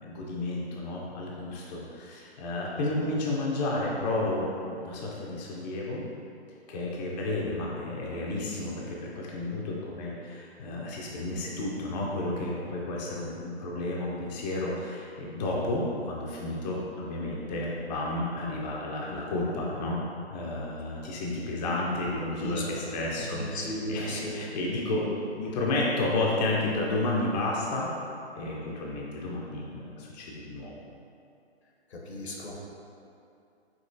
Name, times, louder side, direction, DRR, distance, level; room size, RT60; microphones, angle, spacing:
voice 1, 0.0-6.0 6.7-20.0 20.3-25.1 25.4-27.9 28.3-30.7, left 2 dB, 40° left, -3 dB, 0.6 m, -31 dB
voice 2, 22.4-22.8 23.2-24.4 31.9-32.6, left 1 dB, 75° left, -2 dB, 0.9 m, -35 dB
5.2 x 3.0 x 2.6 m, 2.6 s
hypercardioid pair, 135°, 33 cm